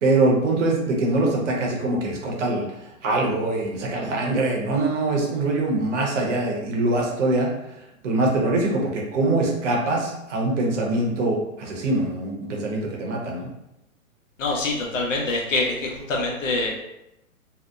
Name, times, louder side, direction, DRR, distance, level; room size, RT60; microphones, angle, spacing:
voice 1, 0.0-2.7 3.0-7.5 8.0-13.5, right 2 dB, 55° right, -1 dB, 0.8 m, -23 dB
voice 2, 14.4-16.7, left 2 dB, 65° left, -1 dB, 0.8 m, -25 dB
2.8 x 2.1 x 2.2 m, 0.88 s
figure-of-eight pair, 120°, 42 cm